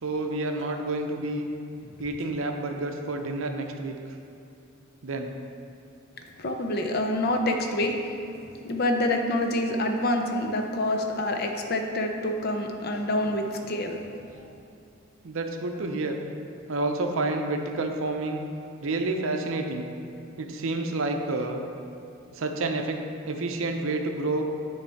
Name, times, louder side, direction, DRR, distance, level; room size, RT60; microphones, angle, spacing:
voice 1, 0.0-1.5 2.0-4.0 5.0-5.3 15.2-16.1 16.7-18.4 18.8-19.9 20.4-21.6 22.3-23.0 23.3-24.5, right 2 dB, 65° right, 4 dB, 0.5 m, -29 dB
voice 2, 6.4-8.0 8.6-14.1, left 1 dB, 45° left, 3 dB, 0.5 m, -27 dB
9.5 x 3.2 x 4.5 m, 2.7 s
head